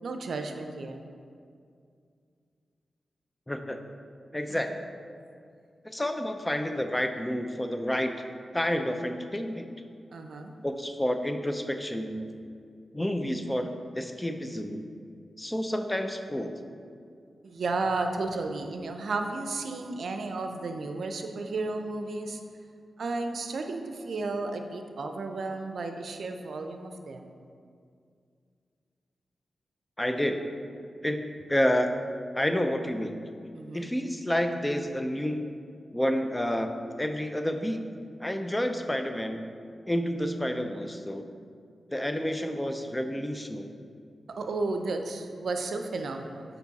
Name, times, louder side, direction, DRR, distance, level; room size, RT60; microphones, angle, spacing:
voice 1, 0.0-1.0 4.5-4.6 10.1-10.5 17.4-22.4 23.0-27.3 33.5-33.9 44.3-46.4, right 3 dB, 75° right, 5 dB, 0.6 m, -33 dB
voice 2, 3.5-3.8 4.3-4.7 5.8-8.1 8.5-9.7 10.6-12.3 12.9-14.9 15.4-16.5 30.0-30.4 31.0-31.9 32.3-33.2 33.7-35.5 35.9-37.8 38.2-39.4 39.9-41.3 41.9-43.7, equal, 15° left, 6 dB, 0.5 m, -29 dB
7.0 x 5.2 x 4.1 m, 2.3 s
cardioid pair, 65°, 0 cm